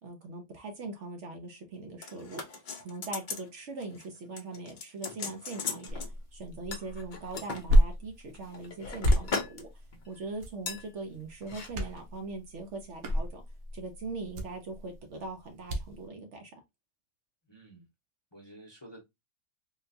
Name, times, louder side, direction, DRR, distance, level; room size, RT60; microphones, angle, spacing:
voice 1, 0.0-2.4 2.8-6.0 6.3-13.4 13.7-16.5, right 3 dB, 60° right, 0.9 m, -41 dB
sound 1, 2.0-3.5 3.8-4.1 4.4-6.1 6.7-7.6 8.3-9.6 9.9-10.1 10.7-10.8 11.4-11.7 12.0-12.1, left 5 dB, 55° left, 0.5 m, -38 dB
sound 2, 5.9-16.1, equal, 85° right, 1.2 m, -31 dB
voice 2, 17.5-17.9 18.3-19.0, right 1 dB, 25° left, 0.8 m, -51 dB
3.7 x 2.2 x 2.6 m
omnidirectional pair, 1.5 m